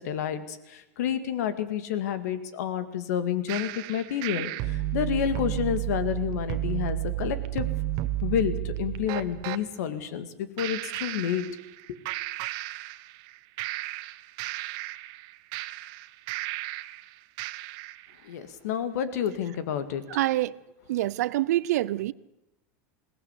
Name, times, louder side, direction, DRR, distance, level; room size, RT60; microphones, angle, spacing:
voice 1, 0.0-7.7 8.2-11.4 11.9-12.0 18.2-20.0, left 9 dB, 75° left, 2.1 m, -29 dB
sound 1, 3.5-9.6 10.6-11.8 12.1-13.3 13.6-17.0 17.4-18.0, right 16 dB, 55° right, 0.9 m, -32 dB
voice 2, 20.1-20.6 20.9-22.1, right 15 dB, 80° right, 0.6 m, -26 dB
21.0 x 17.0 x 8.4 m
supercardioid pair, 115°, 9 cm